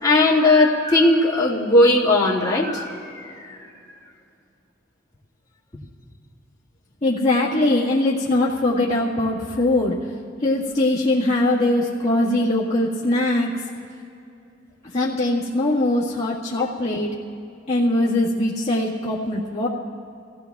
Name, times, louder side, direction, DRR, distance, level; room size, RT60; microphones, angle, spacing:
voice 1, 0.0-3.7, left 2 dB, 20° left, -6 dB, 2.1 m, -18 dB
voice 2, 7.0-10.0 10.4-13.5 14.9-17.1 17.7-19.7, left 1 dB, 35° left, -8 dB, 1.7 m, -21 dB
27.5 x 17.0 x 2.4 m, 2.6 s
head